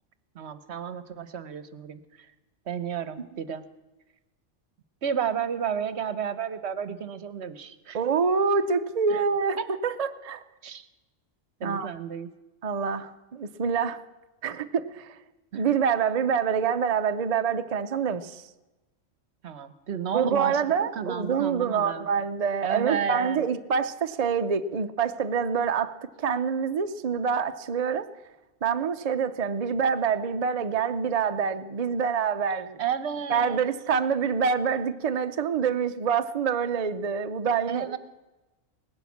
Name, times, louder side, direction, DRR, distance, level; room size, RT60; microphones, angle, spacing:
voice 1, 0.3-2.0 2.7-3.6 5.0-8.0 9.1-9.2 9.6-9.7 10.6-10.9 11.6-12.3 15.5-15.7 19.4-22.1 22.6-23.4 32.8-33.7 37.7-38.0, right 8 dB, 60° right, 13 dB, 1.1 m, -32 dB
voice 2, 7.9-10.4 11.6-11.9 12.6-14.0 14.4-15.2 15.5-18.4 20.1-28.1 28.6-32.8 33.3-38.0, right 6 dB, 40° right, 9 dB, 0.5 m, -26 dB
18.5 x 10.5 x 7.2 m, 1.1 s
omnidirectional pair, 1.3 m